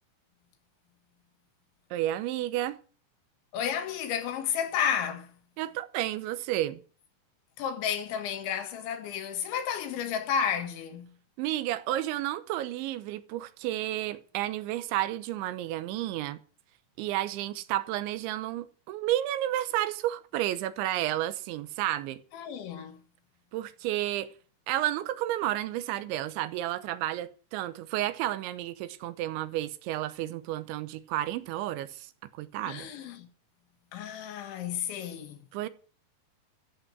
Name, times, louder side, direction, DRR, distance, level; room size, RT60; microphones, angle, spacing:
voice 1, 1.9-2.8 5.6-6.8 11.4-16.4 17.0-22.2 23.5-24.3 24.7-32.9 35.5-35.7, right 14 dB, 90° right, 3.3 m, -31 dB
voice 2, 3.5-5.3 7.6-11.1 22.3-23.0 32.6-33.3 33.9-35.4, left 8 dB, 80° left, 4.1 m, -32 dB
14.0 x 7.9 x 7.9 m
omnidirectional pair, 5.2 m